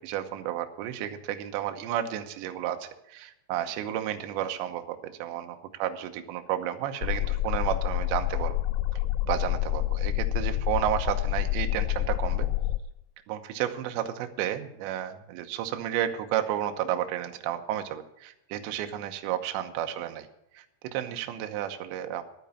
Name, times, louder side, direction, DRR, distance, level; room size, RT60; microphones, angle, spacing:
voice 1, 0.0-8.5 9.3-12.5 13.3-20.3 20.5-20.6 20.9-22.2, right 11 dB, 80° right, 6 dB, 3.1 m, -32 dB
sound 1, 7.0-12.8, left 15 dB, 80° left, 2.6 m, -28 dB
12.0 x 9.1 x 7.0 m, 0.86 s
omnidirectional pair, 5.2 m